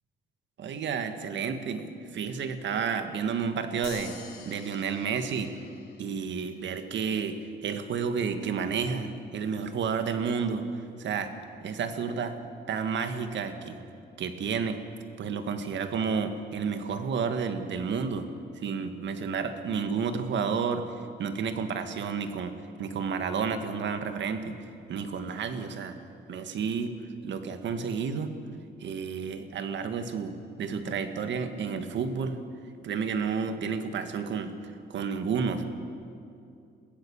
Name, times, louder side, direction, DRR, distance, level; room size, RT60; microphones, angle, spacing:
voice 1, 0.6-4.2 4.5-5.5 6.0-10.7 11.0-11.3 11.6-12.4 12.7-13.8 14.2-14.8 15.2-18.3 18.6-20.9 21.2-24.6 24.9-26.0 26.3-26.9 27.2-28.3 28.8-32.4 32.8-35.6, right 6 dB, 65° right, 8 dB, 1.8 m, -31 dB
sound 1, 3.8-6.6, left 5 dB, 55° left, 3.6 m, -48 dB
23.0 x 16.0 x 7.1 m, 2.5 s
cardioid pair, 90°, 20 cm